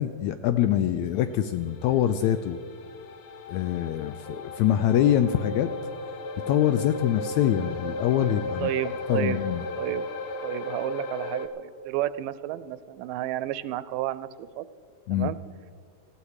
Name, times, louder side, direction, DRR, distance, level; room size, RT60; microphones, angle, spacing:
voice 1, 0.0-2.6 3.5-5.7 6.5-8.7 9.1-9.6 15.1-15.3, left 11 dB, 80° left, 11 dB, 1.6 m, -24 dB
sound 1, 1.1-11.5, left 2 dB, 65° left, 2.0 m, -36 dB
voice 2, 8.6-9.4 9.8-10.1 10.4-14.7 15.1-15.4, right 14 dB, 85° right, 16 dB, 2.1 m, -31 dB
18.5 x 15.0 x 4.9 m, 2.2 s
omnidirectional pair, 3.8 m